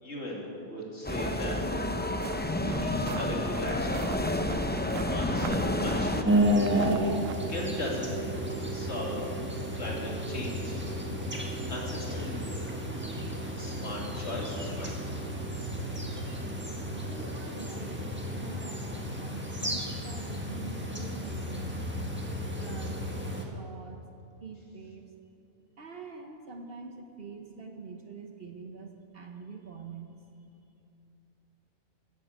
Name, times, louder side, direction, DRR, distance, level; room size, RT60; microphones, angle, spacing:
voice 1, 0.0-1.6 1.9-4.2 5.0-6.3 7.1-8.3 8.7-10.8 11.4-12.5 13.6-15.1, left 1 dB, 55° left, -3 dB, 2.9 m, -38 dB
sound 1, 1.0-6.2, left 1 dB, 15° left, 0.3 m, -30 dB
sound 2, 2.1-7.3, right 9 dB, 75° right, 0.9 m, -43 dB
sound 3, 6.2-23.4, equal, 10° right, 1.4 m, -32 dB
voice 2, 16.9-21.9 22.6-23.0 23.3-24.0 24.4-25.1 25.8-30.2, right 4 dB, 50° right, 3 dB, 1.1 m, -45 dB
13.5 x 9.5 x 8.1 m, 2.7 s
omnidirectional pair, 1.4 m